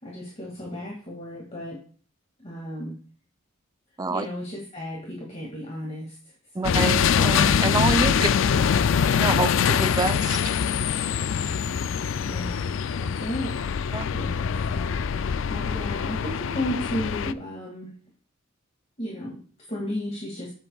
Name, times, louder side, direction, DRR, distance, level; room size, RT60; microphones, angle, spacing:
voice 1, 0.0-1.8 2.4-3.0 4.1-6.8 12.3-15.0 15.2-17.9 19.0-20.5, equal, 30° left, -3 dB, 2.1 m, -34 dB
voice 2, 6.5-8.2 9.2-10.4 11.1-11.4 13.9-14.1, right 3 dB, 20° right, 9 dB, 0.5 m, -27 dB
sound 1, 6.6-17.3, left 7 dB, 65° left, 0.4 m, -24 dB
10.5 x 8.1 x 2.3 m, 0.42 s
head